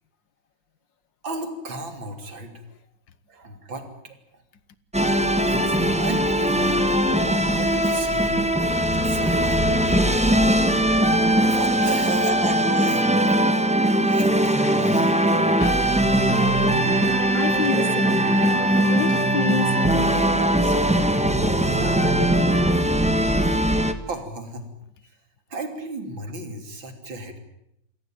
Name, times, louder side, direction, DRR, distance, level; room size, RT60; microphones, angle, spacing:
voice 1, 1.2-2.6 3.3-4.2 5.5-6.8 7.3-8.4 8.9-10.0 11.5-13.4 14.0-15.3 24.0-24.7 25.5-27.4, right 2 dB, 85° right, 3.9 m, -34 dB
sound 1, 4.9-23.9, right 1 dB, 5° right, 1.2 m, -20 dB
voice 2, 11.2-11.7 14.7-14.8 15.6-15.9 16.3-18.3 18.7-22.8, left 7 dB, 75° left, 1.9 m, -32 dB
28.0 x 17.0 x 9.2 m
omnidirectional pair, 2.1 m